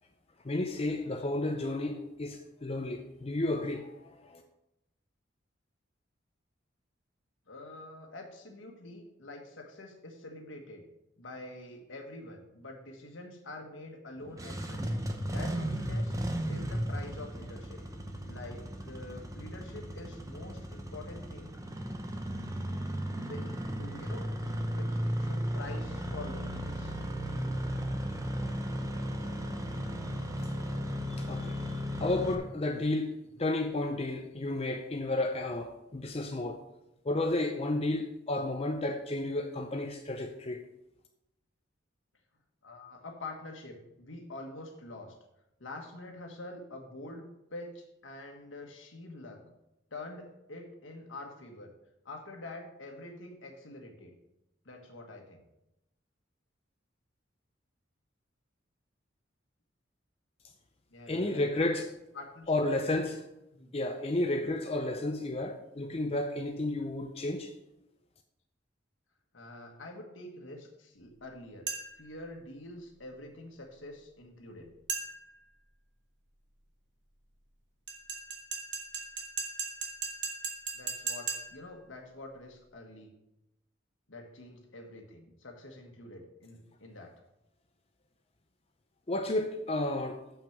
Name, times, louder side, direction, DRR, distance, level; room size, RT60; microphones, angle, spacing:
voice 1, 0.4-4.4 31.1-36.6 37.0-40.6 61.1-61.9 62.5-63.2 63.7-67.5 89.1-90.2, left 2 dB, 30° left, 0.5 m, -32 dB
voice 2, 7.5-10.9 11.2-14.9 15.3-16.2 16.5-17.8 18.2-21.5 23.2-23.5 23.8-24.3 24.7-27.0 33.3-33.5 42.6-45.2 45.6-49.4 49.9-51.7 52.0-54.1 54.6-55.4 60.9-61.5 62.1-62.6 63.5-63.7 69.3-74.7 80.7-83.1 84.1-87.1, left 2 dB, 85° left, 1.4 m, -46 dB
Engine starting, 14.2-32.4, equal, 15° right, 0.8 m, -35 dB
sound 1, 71.7-72.1 74.9-75.4 77.9-81.7, right 5 dB, 65° right, 1.5 m, -38 dB
7.2 x 5.9 x 5.9 m
head